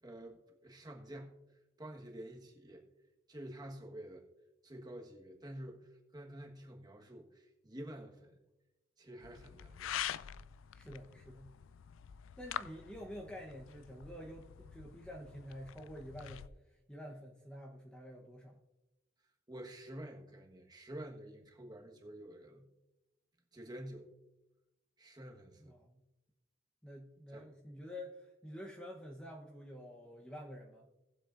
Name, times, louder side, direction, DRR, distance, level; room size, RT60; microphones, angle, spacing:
voice 1, 0.0-2.8 3.3-4.2 4.6-8.4 9.0-10.0 19.5-22.7 23.5-24.1 25.0-25.7 27.3-27.5, right 1 dB, 20° right, 1 dB, 1.3 m, -49 dB
sound 1, 9.2-16.5, left 10 dB, 90° left, 0.4 m, -46 dB
voice 2, 10.7-11.6 12.4-18.5 25.6-26.0 26.8-30.9, equal, 5° left, -1 dB, 0.9 m, -49 dB
18.5 x 7.8 x 2.5 m, 1.0 s
head